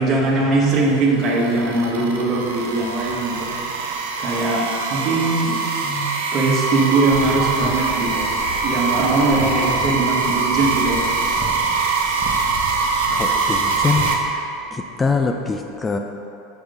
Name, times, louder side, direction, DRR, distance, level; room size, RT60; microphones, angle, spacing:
voice 1, 0.0-3.5 3.7-3.9 4.2-8.2 8.6-11.0, right 2 dB, 45° right, -2 dB, 1.4 m, -21 dB
sound 1, 0.7-14.1, right 4 dB, 80° right, 0.7 m, -23 dB
sound 2, 7.1-14.1, left 2 dB, 40° left, 1.3 m, -34 dB
voice 2, 13.1-14.1 14.7-16.0, left 4 dB, 20° left, 4 dB, 0.4 m, -23 dB
5.1 x 4.7 x 5.2 m, 2.8 s
hypercardioid pair, 95°, 0 cm